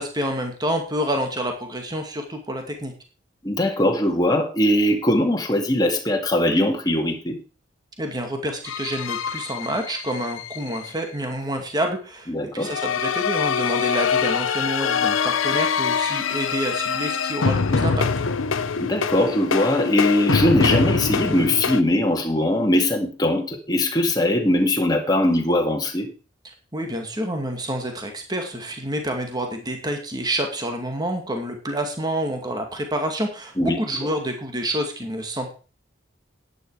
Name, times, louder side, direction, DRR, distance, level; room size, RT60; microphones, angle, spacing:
voice 1, 0.0-2.9 8.0-18.1 26.7-35.5, right 1 dB, 20° right, 4 dB, 2.3 m, -28 dB
voice 2, 3.4-7.4 12.3-12.7 18.8-26.1 33.6-33.8, left 1 dB, 20° left, 2 dB, 2.2 m, -21 dB
Horror Incidental Theme, 8.6-10.9 12.6-21.8, left 5 dB, 90° left, 0.8 m, -24 dB
11.0 x 9.8 x 5.0 m, 0.35 s
head